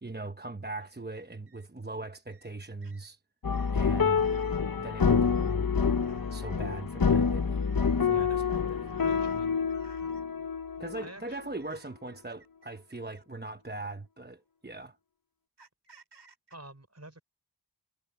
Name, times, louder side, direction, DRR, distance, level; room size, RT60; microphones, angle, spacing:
voice 1, 0.0-3.2 3.7-5.7 6.3-7.7 8.0-8.8 10.8-15.0, right 2 dB, 25° right, 1.1 m, -40 dB
sound 1, 0.8-1.0 1.5-1.7 2.3-2.5 2.8-3.1 3.5-3.8 4.2-4.6 5.1-5.6 6.0-6.6 7.4-8.0 8.9-9.4 9.7-10.2 11.3-13.4 14.3-14.4 15.6-16.6, right 3 dB, 80° right, 6.7 m, -60 dB
sound 2, 3.4-11.1 11.4-11.5, left 6 dB, 55° left, 0.9 m, -27 dB
voice 2, 8.1-8.4 8.9-9.5 11.0-11.4 16.5-17.2, right 1 dB, 40° right, 5.3 m, -48 dB
wide cardioid pair, 50°, 41 cm